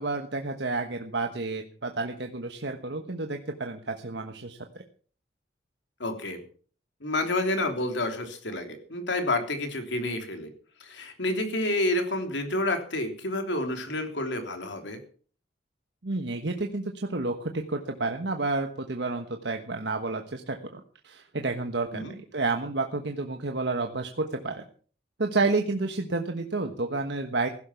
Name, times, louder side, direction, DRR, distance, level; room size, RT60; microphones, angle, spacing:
voice 1, 0.0-4.6 16.0-24.6 25.2-27.5, right 3 dB, 70° right, 5 dB, 1.3 m, -30 dB
voice 2, 6.0-6.4 7.0-10.5 10.8-15.0 21.9-22.1, left 1 dB, 80° left, 6 dB, 3.3 m, -29 dB
16.0 x 12.0 x 5.9 m, 0.43 s
head